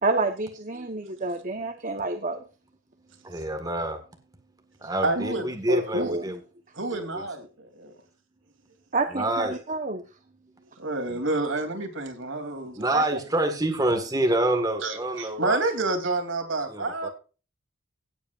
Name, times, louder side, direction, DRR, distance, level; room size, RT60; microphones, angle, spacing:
voice 1, 0.0-2.4 5.7-6.3 8.9-10.0 12.9-13.1, right 2 dB, 40° right, 1.1 m, -28 dB
voice 2, 3.0-4.0 4.8-6.4 6.9-7.2 9.2-9.6 11.1-11.2 12.8-15.6 16.7-17.1, right 1 dB, 20° right, 1.7 m, -27 dB
voice 3, 5.0-5.5 5.9-6.1 6.7-7.9 10.8-12.9 14.8-17.1, right 2 dB, 70° right, 3.1 m, -29 dB
17.0 x 8.4 x 2.5 m
head